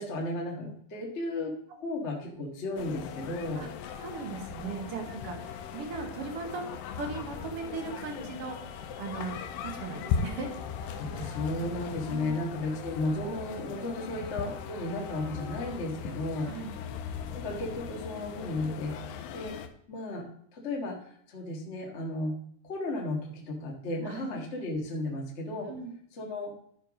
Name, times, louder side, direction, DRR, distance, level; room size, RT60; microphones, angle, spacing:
voice 1, 0.0-1.6 1.8-3.6 4.6-4.8 11.1-16.5 17.3-19.0 19.3-19.5 19.9-20.3 20.5-22.3 22.6-25.7 26.2-26.5, left 2 dB, 40° left, -1 dB, 1.0 m, -34 dB
sound 1, 2.8-19.7, left 7 dB, 85° left, 2.4 m, -38 dB
voice 2, 4.0-6.6 6.9-10.6 11.1-11.4 12.1-12.3 14.0-14.1 16.4-16.8 24.0-24.3 25.7-25.9, right 5 dB, 60° right, 3 dB, 1.7 m, -38 dB
12.5 x 4.6 x 5.0 m, 0.65 s
omnidirectional pair, 3.9 m